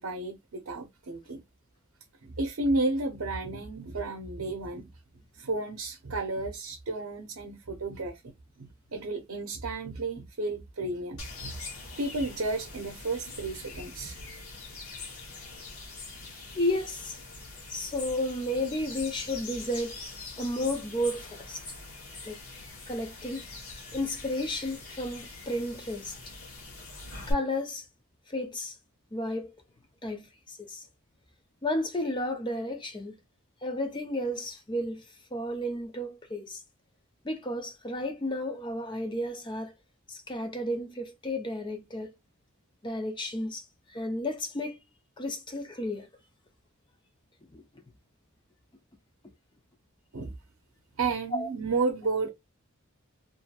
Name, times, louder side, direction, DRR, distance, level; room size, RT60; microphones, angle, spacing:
voice 1, 0.0-1.4 2.2-4.9 5.4-8.2 8.6-11.5 12.0-14.1 50.1-50.3 51.0-52.3, right 3 dB, 80° right, 0.6 m, -32 dB
sound 1, 11.2-27.3, left 3 dB, 75° left, 1.2 m, -43 dB
voice 2, 16.5-17.2 17.7-20.0 20.4-21.6 22.3-22.4 22.9-23.5 23.9-26.3 27.3-27.8 28.3-28.7 29.1-29.5 30.0-30.8 31.6-33.1 33.6-35.0 35.3-36.6 37.2-39.7 40.1-42.1 42.8-43.6 43.9-44.8 45.2-46.1 47.5-47.6 51.3-51.5, left 1 dB, 20° left, 0.6 m, -32 dB
2.8 x 2.6 x 2.3 m
head